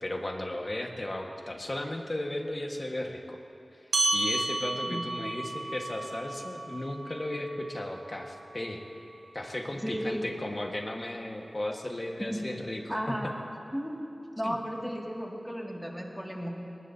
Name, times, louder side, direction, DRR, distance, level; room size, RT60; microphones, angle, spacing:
voice 1, 0.0-3.4 3.7-3.8 4.1-8.8 9.3-13.2 14.4-14.6, left 1 dB, 40° left, 2 dB, 1.5 m, -35 dB
sound 1, 3.9-8.7, right 2 dB, 85° right, 2.5 m, -33 dB
voice 2, 4.9-5.3 9.8-10.3 12.2-12.4 12.9-13.4 13.7-14.1 14.4-16.5, equal, 5° right, -1 dB, 2.2 m, -34 dB
20.0 x 19.5 x 2.8 m, 2.7 s
wide cardioid pair, 55°, 0 cm